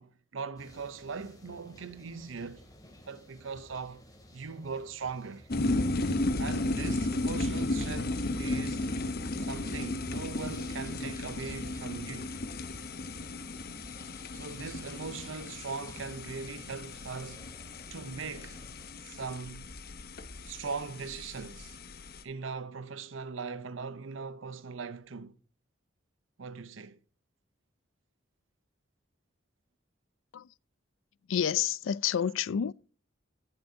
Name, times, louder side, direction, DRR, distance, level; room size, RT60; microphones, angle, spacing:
voice 1, 0.0-2.7 3.1-4.0 4.3-5.5 6.4-9.0 9.4-12.4 14.3-17.5 17.9-18.6 19.0-19.7 20.4-21.8 22.2-25.4 26.4-27.0, right 5 dB, 85° right, 0.7 m, -40 dB
sound 1, 0.6-19.0, left 1 dB, 20° left, 2.7 m, -55 dB
sound 2, 5.5-22.2, left 2 dB, 55° left, 1.0 m, -35 dB
voice 2, 31.3-32.7, left 8 dB, 90° left, 0.4 m, -29 dB
17.0 x 7.8 x 2.8 m
head